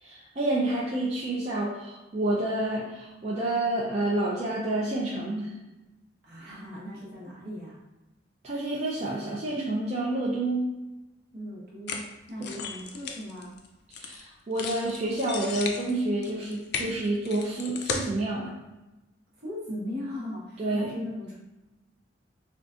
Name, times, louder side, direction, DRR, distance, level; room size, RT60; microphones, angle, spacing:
voice 1, 0.0-5.5 8.4-10.6 12.5-12.6 13.9-18.6 20.6-20.9, right 2 dB, 35° right, -6 dB, 0.4 m, -29 dB
voice 2, 6.2-7.8 11.3-13.6 19.4-21.3, left 1 dB, 60° right, -5 dB, 1.0 m, -38 dB
sound 1, 11.9-14.2 14.6-18.1, left 5 dB, 60° left, 0.4 m, -35 dB
3.8 x 2.3 x 2.4 m, 1.0 s
head